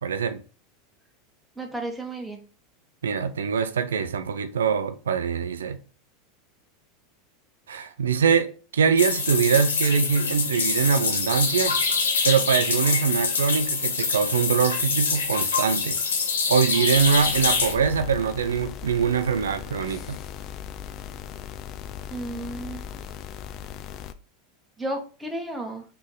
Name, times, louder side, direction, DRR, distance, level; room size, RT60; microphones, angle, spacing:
voice 1, 0.0-0.4 3.0-5.8 7.7-11.8 12.2-16.0 16.5-20.2, right 6 dB, 85° right, 0.4 m, -23 dB
voice 2, 1.5-2.4 22.1-22.8 24.8-25.8, right 1 dB, 10° right, 1.4 m, -33 dB
sound 1, 9.0-17.7, left 5 dB, 85° left, 1.0 m, -25 dB
sound 2, 16.9-24.1, left 9 dB, 45° left, 0.4 m, -38 dB
4.1 x 3.2 x 3.8 m
hypercardioid pair, 95°, 0 cm